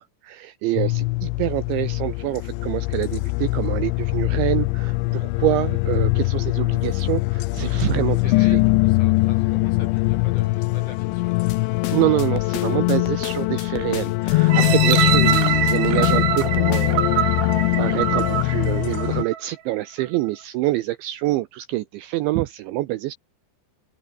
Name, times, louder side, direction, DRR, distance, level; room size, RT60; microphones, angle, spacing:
voice 1, 0.0-8.6 11.9-17.5 17.8-23.2, right 17 dB, 80° right, 2.8 m, -26 dB
sound 1, 0.8-19.2, left 22 dB, 90° left, 2.6 m, -22 dB
voice 2, 8.0-11.5, left 3 dB, 35° left, 7.3 m, -43 dB
sound 2, 11.5-17.1, left 11 dB, 60° left, 3.7 m, -36 dB
sound 3, 14.5-19.4 20.0-20.1, right 11 dB, 60° right, 3.8 m, -24 dB
omnidirectional pair, 6.0 m